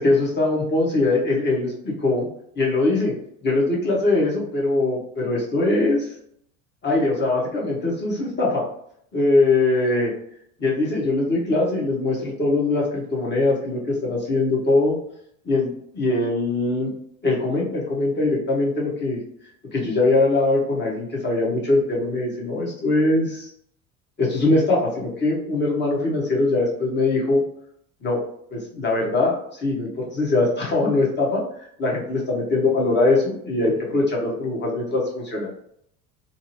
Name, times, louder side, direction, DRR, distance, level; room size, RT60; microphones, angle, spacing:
voice 1, 0.0-2.3 2.5-3.1 3.4-6.1 6.8-8.6 9.1-10.1 10.6-15.0 15.4-16.9 17.2-19.2 19.7-23.5 24.2-27.4 28.0-28.2 28.5-31.4 31.8-35.5, left 2 dB, 25° left, -3 dB, 1.2 m, -22 dB
4.0 x 2.0 x 2.8 m, 0.69 s
hypercardioid pair, 75°, 43 cm